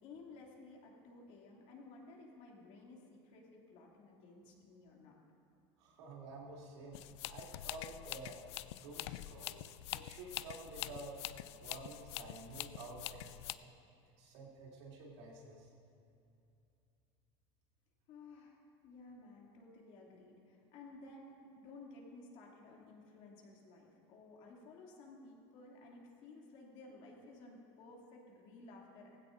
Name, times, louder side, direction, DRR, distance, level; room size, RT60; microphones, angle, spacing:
voice 1, 0.0-5.1 18.1-29.2, left 3 dB, 55° left, -2 dB, 2.7 m, -55 dB
voice 2, 5.8-8.4 8.7-11.2 11.6-13.7 14.2-15.7, right 2 dB, 90° right, -3 dB, 3.2 m, -51 dB
sound 1, 6.9-13.5, left 15 dB, 85° left, 0.4 m, -45 dB
16.0 x 15.5 x 2.7 m, 2.7 s
supercardioid pair, 135°, 14 cm